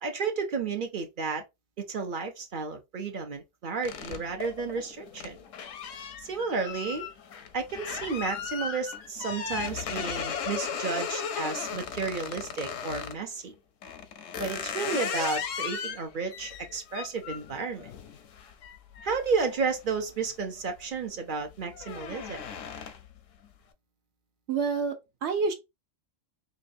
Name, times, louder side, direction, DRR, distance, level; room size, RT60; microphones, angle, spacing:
voice 1, 0.0-1.4 1.8-5.4 6.2-7.1 7.5-13.5 14.4-17.9 19.0-22.4, right 5 dB, 50° right, 0.7 m, -32 dB
sound 1, 3.8-13.2 13.8-20.3 20.7-21.0 21.3-23.2, left 7 dB, 80° left, 1.0 m, -37 dB
voice 2, 24.5-25.5, right 4 dB, 65° right, 1.0 m, -28 dB
5.1 x 2.3 x 2.6 m
omnidirectional pair, 1.3 m